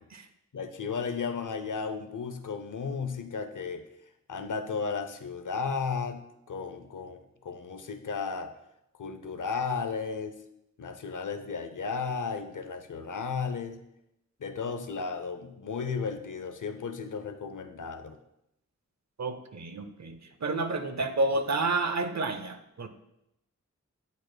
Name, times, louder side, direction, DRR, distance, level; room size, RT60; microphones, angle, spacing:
voice 1, 0.5-3.8 4.3-8.5 9.0-10.4 10.8-13.8 14.4-18.2, left 5 dB, 85° left, 8 dB, 0.6 m, -34 dB
voice 2, 19.2-22.9, right 2 dB, 65° right, 9 dB, 0.6 m, -30 dB
9.0 x 5.1 x 2.2 m, 0.82 s
wide cardioid pair, 50°, 30 cm